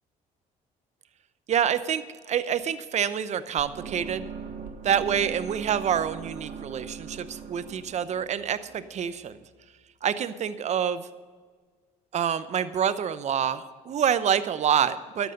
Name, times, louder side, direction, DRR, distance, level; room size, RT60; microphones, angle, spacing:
voice 1, 1.5-4.3 4.8-9.4 10.0-11.1 12.1-15.3, right 8 dB, 50° right, 13 dB, 0.8 m, -27 dB
sound 1, 3.6-9.6, right 6 dB, 70° right, 1.8 m, -41 dB
12.0 x 8.1 x 6.6 m, 1.5 s
cardioid pair, 95°, 15 cm